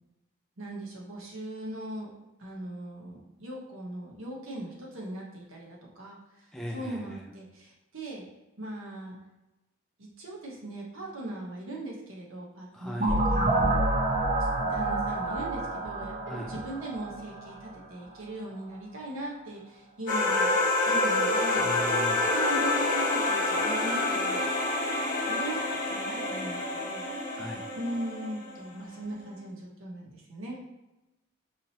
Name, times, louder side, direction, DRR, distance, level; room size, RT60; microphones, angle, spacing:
voice 1, 0.6-2.1 2.4-6.2 6.7-8.2 8.6-9.2 10.0-13.8 14.4-20.5 20.8-21.7 22.3-24.4 25.3-27.3 27.8-30.6, right 1 dB, 80° right, -2 dB, 1.0 m, -39 dB
voice 2, 6.5-7.3 12.7-13.2 16.2-16.5 21.5-22.3 27.3-27.7, equal, ahead, -1 dB, 0.3 m, -38 dB
sound 1, 13.0-17.7, right 2 dB, 35° right, 0.6 m, -28 dB
sound 2, 20.1-28.7, left 2 dB, 40° left, 0.8 m, -27 dB
4.8 x 2.8 x 2.8 m, 1.0 s
head